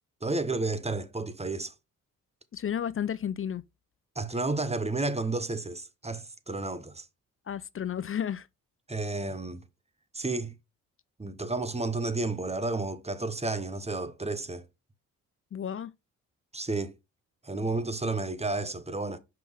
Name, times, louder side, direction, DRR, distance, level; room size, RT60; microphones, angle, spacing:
voice 1, 0.2-1.7 4.2-7.0 8.9-9.6 10.1-10.5 11.2-14.6 16.5-16.9 17.4-19.2, right 3 dB, 15° right, 1.0 m, -31 dB
voice 2, 2.5-3.6 7.5-8.5 15.5-15.9, left 9 dB, 35° left, 0.5 m, -32 dB
5.6 x 5.3 x 3.5 m
supercardioid pair, 55°, 36 cm